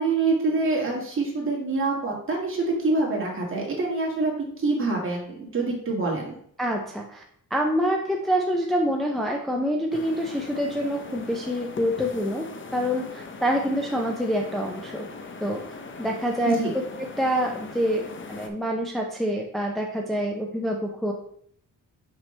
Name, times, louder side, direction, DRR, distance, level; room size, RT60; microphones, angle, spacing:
voice 1, 0.0-4.3 4.6-6.3 16.4-16.7, right 3 dB, 40° right, -2 dB, 2.0 m, -25 dB
voice 2, 6.6-7.2 7.5-12.5 12.7-15.1 15.4-15.6 16.0-18.0 18.3-21.1, equal, ahead, 0 dB, 0.5 m, -26 dB
sound 1, 9.9-18.5, left 4 dB, 35° left, 0.7 m, -40 dB
5.9 x 5.7 x 3.3 m, 0.65 s
wide cardioid pair, 140°, 33 cm